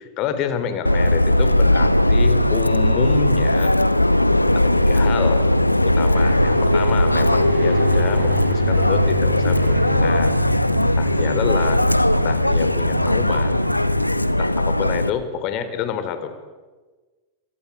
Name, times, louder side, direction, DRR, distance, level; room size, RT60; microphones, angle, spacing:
voice 1, 0.0-3.7 4.5-5.4 5.8-10.4 10.9-11.8 12.1-13.6 14.3-16.3, left 8 dB, 40° left, 11 dB, 4.0 m, -28 dB
Subway metro underground, 0.9-15.1, left 1 dB, 85° left, 1.0 m, -18 dB
Aircraft, 6.1-14.2, right 4 dB, 30° right, 4.4 m, -32 dB
27.0 x 25.0 x 8.5 m, 1.3 s
figure-of-eight pair, 90°, 0 cm